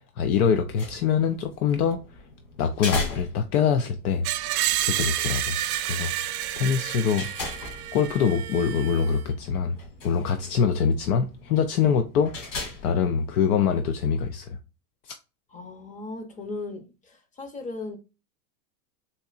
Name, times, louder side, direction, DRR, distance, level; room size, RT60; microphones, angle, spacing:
voice 1, 0.2-2.0 2.6-4.3 4.8-5.6 5.8-6.1 6.6-7.3 7.9-9.8 10.0-12.3 12.8-14.6 15.0-15.2, left 7 dB, 70° left, 0.6 m, -24 dB
sound 1, 0.5-14.0, left 3 dB, 55° left, 2.0 m, -40 dB
Screech, 4.2-9.2, right 13 dB, 70° right, 0.5 m, -29 dB
voice 2, 15.5-18.0, left 3 dB, 15° left, 0.6 m, -37 dB
4.2 x 2.8 x 2.4 m
supercardioid pair, 120°, 45 cm